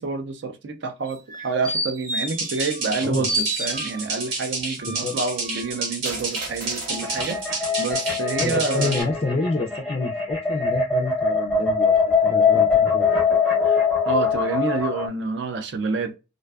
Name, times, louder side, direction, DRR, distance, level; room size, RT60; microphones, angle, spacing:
voice 1, 0.0-9.0 13.7-13.8 14.1-16.1, right 4 dB, 60° right, 0.4 m, -28 dB
sound 1, 1.1-3.0 3.3-4.3 4.8-7.4 7.9-8.0, right 1 dB, 40° right, 0.8 m, -31 dB
sound 2, 2.2-9.0, right 3 dB, 80° right, 0.9 m, -30 dB
sound 3, 6.9-15.1, left 5 dB, ahead, 0.6 m, -22 dB
voice 2, 8.4-13.2, left 3 dB, 30° left, 0.3 m, -28 dB
2.5 x 2.2 x 2.3 m
head